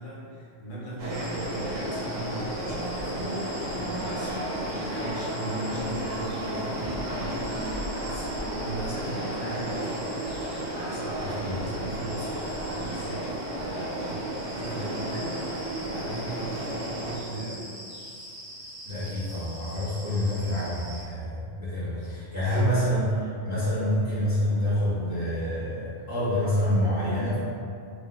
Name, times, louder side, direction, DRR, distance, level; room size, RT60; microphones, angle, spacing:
voice 1, 0.0-10.0 10.7-13.3 13.7-15.4 15.8-17.7 21.6-22.8, right 1 dB, 80° left, -6 dB, 1.1 m, -38 dB
sound 1, 1.0-17.2, right 1 dB, 85° right, 1.0 m, -32 dB
sound 2, 1.1-21.0, equal, 50° right, 1.1 m, -44 dB
voice 2, 11.2-11.6 18.8-27.4, equal, 20° right, -11 dB, 0.6 m, -27 dB
3.1 x 2.6 x 2.3 m, 2.4 s
omnidirectional pair, 1.3 m